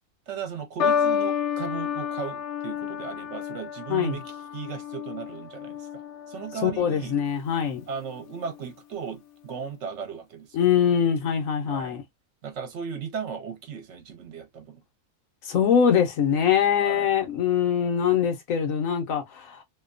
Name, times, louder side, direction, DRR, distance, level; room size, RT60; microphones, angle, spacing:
voice 1, 0.3-6.0 6.3-7.1 7.9-10.6 11.6-12.0 12.4-14.8 16.8-17.1, right 6 dB, 65° right, 1.0 m, -36 dB
sound 1, 0.8-7.3 8.2-8.6, left 7 dB, 65° left, 0.8 m, -30 dB
voice 2, 6.6-7.8 10.5-12.0 15.4-19.6, left 8 dB, 85° left, 1.2 m, -23 dB
2.7 x 2.2 x 2.4 m
omnidirectional pair, 1.4 m